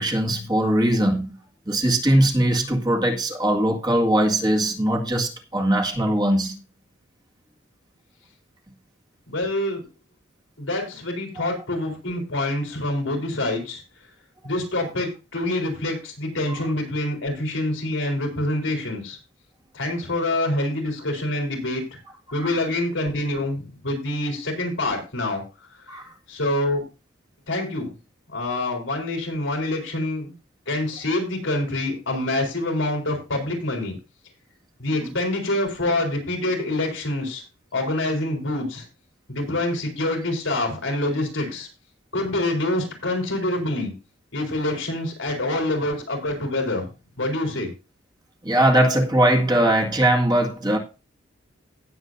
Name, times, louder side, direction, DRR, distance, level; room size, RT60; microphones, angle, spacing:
voice 1, 0.0-1.4 1.7-6.6 16.5-16.6 22.4-22.6 25.9-26.1 35.0-35.2 48.4-50.8, right 1 dB, 25° right, 1.9 m, -21 dB
voice 2, 9.3-9.8 10.6-13.8 14.4-19.2 19.7-22.0 22.3-25.4 25.9-26.0 26.3-26.8 27.5-27.9 28.3-30.3 30.7-33.9 34.8-37.4 37.7-38.8 39.3-41.7 42.1-43.9 44.3-46.9 47.2-47.7, left 1 dB, 90° left, 4.1 m, -26 dB
17.5 x 7.3 x 2.7 m
head